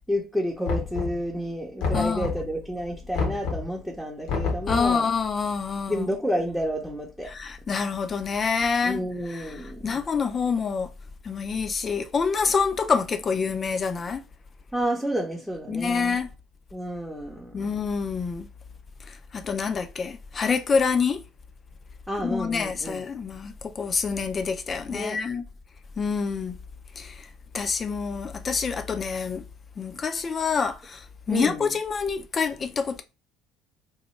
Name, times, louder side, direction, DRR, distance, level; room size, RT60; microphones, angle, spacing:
voice 1, 0.1-5.1 5.9-7.3 8.8-10.0 14.7-16.2 16.7-17.7 22.1-23.0 24.9-25.2 31.3-31.8, equal, ahead, 0.7 m, -30 dB
Knock, 0.7-1.4 1.8-2.6 3.1-3.8 4.3-5.0, left 4 dB, 60° left, 0.7 m, -29 dB
voice 2, 1.9-2.3 4.7-6.1 7.3-9.0 9.3-9.5 9.8-10.9 11.2-14.2 15.7-16.3 17.5-18.5 19.1-21.2 22.2-25.4 26.0-26.6 27.0-27.3 27.5-29.4 29.8-33.0, left 5 dB, 35° left, 0.5 m, -27 dB
3.0 x 2.2 x 3.1 m
figure-of-eight pair, 55°, 0 cm